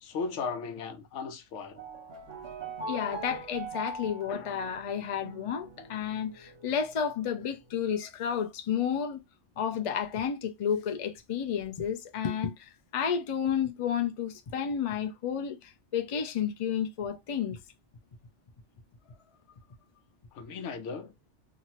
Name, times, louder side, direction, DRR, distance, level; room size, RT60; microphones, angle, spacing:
voice 1, 0.0-1.8 20.3-21.1, left 5 dB, 80° left, 0.9 m, -36 dB
sound 1, 1.6-7.5, right 2 dB, 55° right, 1.2 m, -42 dB
voice 2, 2.9-9.2 9.6-17.6, left 8 dB, 55° left, 0.3 m, -31 dB
2.8 x 2.5 x 2.9 m
omnidirectional pair, 1.2 m